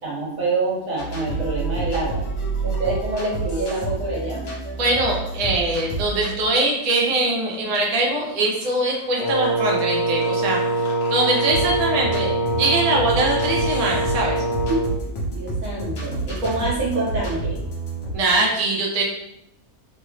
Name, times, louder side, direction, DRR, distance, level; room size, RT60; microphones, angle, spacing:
voice 1, 0.0-2.2 2.6-4.5 14.7-14.8 15.3-17.6, right 2 dB, 65° right, -6 dB, 1.6 m, -26 dB
sound 1, 1.0-18.2, right 3 dB, 60° left, 1.0 m, -30 dB
voice 2, 4.8-14.4 18.1-19.0, right 2 dB, 40° right, -2 dB, 0.5 m, -22 dB
Wind instrument woodwind instrument, 9.2-15.0, right 2 dB, 85° left, 1.1 m, -24 dB
3.4 x 2.0 x 3.1 m, 0.79 s
omnidirectional pair, 1.5 m